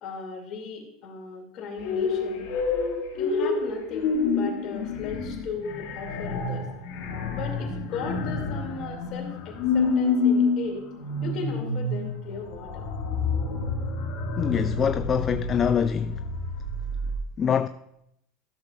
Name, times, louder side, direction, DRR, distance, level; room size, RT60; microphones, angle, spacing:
voice 1, 0.0-2.5 3.1-6.7 7.3-10.8 11.2-12.8, left 5 dB, 50° left, 2.4 m, -37 dB
sound 1, 1.8-17.2, left 4 dB, 65° left, 1.7 m, -28 dB
voice 2, 14.4-16.2 17.4-17.7, left 7 dB, 30° left, 0.3 m, -24 dB
14.0 x 7.0 x 2.4 m
supercardioid pair, 120°, 0 cm